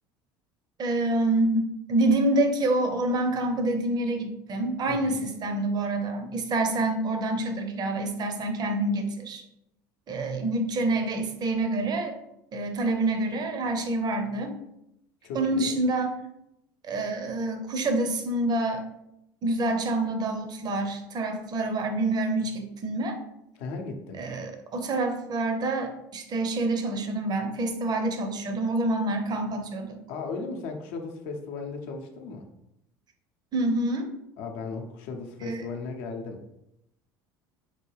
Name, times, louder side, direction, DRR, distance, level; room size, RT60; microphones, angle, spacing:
voice 1, 0.8-9.4 10.1-12.1 12.5-14.5 15.3-16.1 16.8-18.8 19.4-23.2 24.2-30.0 33.5-34.1 35.4-35.6, right 2 dB, 40° right, 5 dB, 0.7 m, -27 dB
voice 2, 4.9-5.2 15.2-15.8 23.6-24.2 30.1-32.5 34.4-36.4, left 4 dB, 65° left, 4 dB, 0.6 m, -36 dB
4.0 x 2.2 x 3.2 m, 0.83 s
hypercardioid pair, 75°, 11 cm